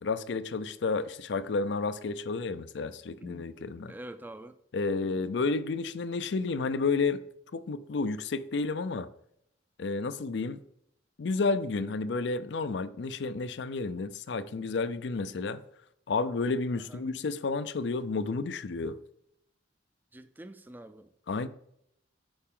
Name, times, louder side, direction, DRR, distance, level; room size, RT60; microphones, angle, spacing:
voice 1, 0.0-3.9 4.7-7.2 7.5-9.1 9.8-10.6 11.2-15.6 16.1-19.0 21.3-21.5, left 4 dB, 65° left, 0.5 m, -31 dB
voice 2, 3.2-3.5 3.9-4.5 5.2-5.3 16.9-17.0 20.1-21.1, right 1 dB, 10° right, 0.3 m, -46 dB
8.7 x 4.9 x 3.7 m
head